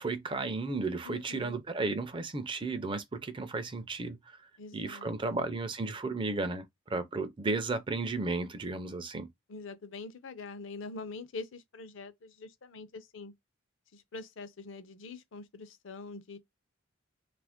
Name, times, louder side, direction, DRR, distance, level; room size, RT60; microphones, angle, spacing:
voice 1, 0.0-4.4 4.7-9.3, right 3 dB, 25° right, 0.4 m, -34 dB
voice 2, 1.0-1.6 4.6-5.4 9.5-13.3 13.9-16.4, left 3 dB, 65° left, 0.5 m, -44 dB
2.8 x 2.5 x 3.5 m
head